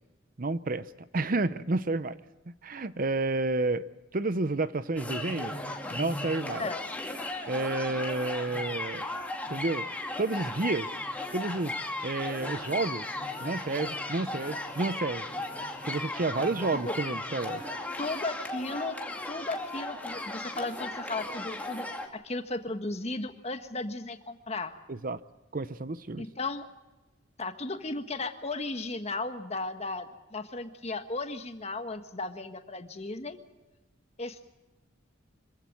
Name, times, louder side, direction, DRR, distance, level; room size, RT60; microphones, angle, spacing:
voice 1, 0.4-2.2 2.5-5.5 5.9-6.7 7.5-9.1 9.5-9.9 10.2-10.9 11.3-11.7 12.0-13.1 13.4-15.3 15.8-17.6 24.9-25.2 25.5-26.2, right 2 dB, 45° right, 14 dB, 0.7 m, -30 dB
sound 1, 5.0-22.1, left 2 dB, 10° left, 2.2 m, -36 dB
voice 2, 18.0-19.0 19.3-21.9 22.1-24.7 26.2-26.6 27.4-33.4 34.2-34.5, left 2 dB, 35° left, 8 dB, 1.5 m, -35 dB
25.5 x 15.5 x 7.7 m, 1.1 s
head